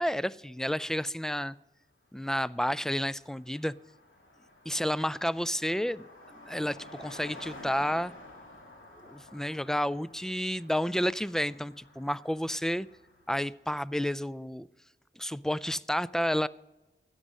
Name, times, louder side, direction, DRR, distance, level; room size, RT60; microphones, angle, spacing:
voice 1, 0.0-1.6 2.1-3.7 4.7-8.1 9.0-12.9 13.3-14.7 15.2-16.5, equal, ahead, 0.3 m, -31 dB
Car passing by, 2.2-2.3 2.5-13.5, left 1 dB, 80° left, 2.0 m, -51 dB
13.5 x 9.8 x 5.3 m
wide cardioid pair, 50°, 20 cm